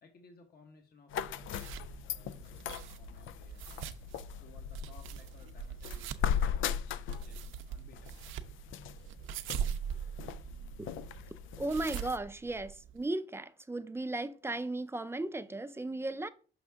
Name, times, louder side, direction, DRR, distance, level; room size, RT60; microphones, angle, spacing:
voice 1, 0.0-3.9 4.4-8.2 9.1-9.3, left 4 dB, 50° left, 1.2 m, -61 dB
sound 1, 1.1-12.2, left 9 dB, 80° left, 0.4 m, -39 dB
sound 2, 1.1-13.1, right 9 dB, 85° right, 0.6 m, -43 dB
voice 2, 11.6-16.3, right 2 dB, 10° right, 0.5 m, -36 dB
6.2 x 5.4 x 3.5 m
cardioid pair, 90°, 20 cm